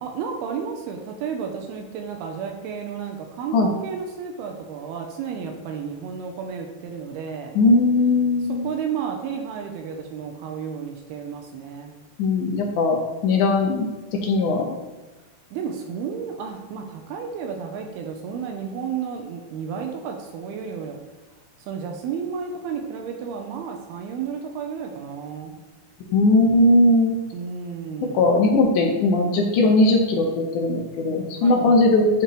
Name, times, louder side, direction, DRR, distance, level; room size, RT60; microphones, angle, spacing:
voice 1, 0.0-7.6 8.5-11.9 15.5-21.0 21.7-25.6 27.3-28.3 31.3-31.9, right 6 dB, 80° right, 3 dB, 2.6 m, -32 dB
voice 2, 7.6-8.7 12.2-13.0 13.2-13.9 14.2-14.6 26.1-27.2 28.1-32.2, left 2 dB, 75° left, 1 dB, 1.8 m, -19 dB
13.5 x 4.5 x 3.1 m, 1.2 s
omnidirectional pair, 4.6 m